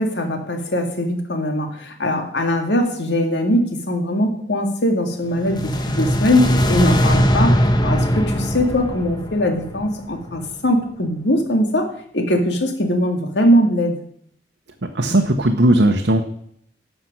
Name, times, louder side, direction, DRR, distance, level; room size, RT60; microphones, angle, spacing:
voice 1, 0.0-7.5 7.8-11.9 12.1-13.9, left 1 dB, 80° left, 4 dB, 2.1 m, -20 dB
sound 1, 5.3-10.5, equal, 25° left, 1.1 m, -20 dB
voice 2, 14.9-16.2, right 1 dB, 85° right, 3 dB, 1.0 m, -16 dB
11.5 x 6.6 x 6.1 m, 0.66 s
head